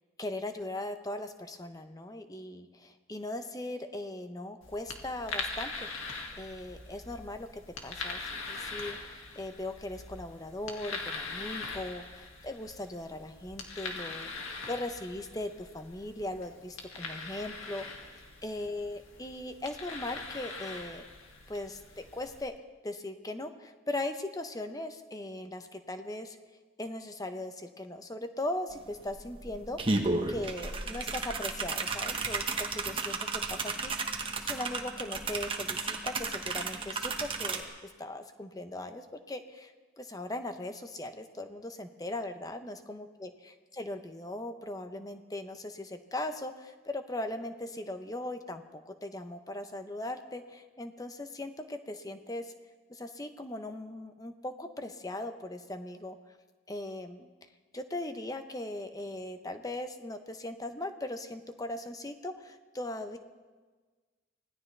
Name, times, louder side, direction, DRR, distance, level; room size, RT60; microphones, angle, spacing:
voice 1, 0.2-18.1 18.4-21.0 21.5-22.5 22.8-26.4 26.8-29.8 30.3-52.5 52.9-56.2 56.7-57.3 57.7-63.2, left 1 dB, 20° left, 7 dB, 0.7 m, -39 dB
sound 1, 4.6-22.4, left 3 dB, 90° left, 2.1 m, -42 dB
sound 2, 28.7-28.8 29.1-37.6, right 3 dB, 25° right, 1.1 m, -33 dB
25.0 x 17.0 x 3.3 m, 1.4 s
head